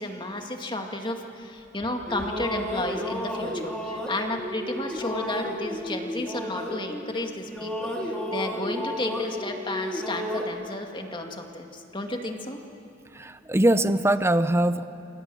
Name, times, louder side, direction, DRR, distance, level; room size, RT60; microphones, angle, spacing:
voice 1, 0.0-12.6, left 2 dB, 25° left, 3 dB, 2.1 m, -32 dB
sound 1, 1.8-7.2 7.5-10.4, equal, 5° left, 3.2 m, -32 dB
voice 2, 13.1-14.9, right 1 dB, 15° right, 11 dB, 0.7 m, -22 dB
29.0 x 24.0 x 7.8 m, 2.7 s
head